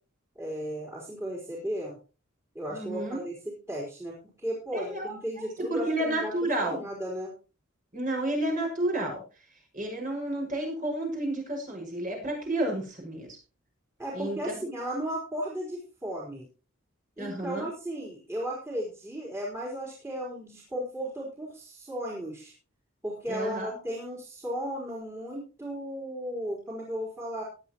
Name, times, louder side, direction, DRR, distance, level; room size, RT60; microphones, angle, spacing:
voice 1, 0.4-2.0 2.5-6.3 6.6-7.3 14.0-16.5 17.2-22.5 23.0-27.4, equal, 15° right, -4 dB, 4.2 m, -35 dB
voice 2, 2.7-3.2 4.7-6.8 7.9-9.2 9.7-13.4 14.1-14.7 17.2-17.7 23.3-23.8, right 1 dB, 40° right, 0 dB, 6.2 m, -31 dB
17.5 x 11.0 x 3.1 m, 0.34 s
head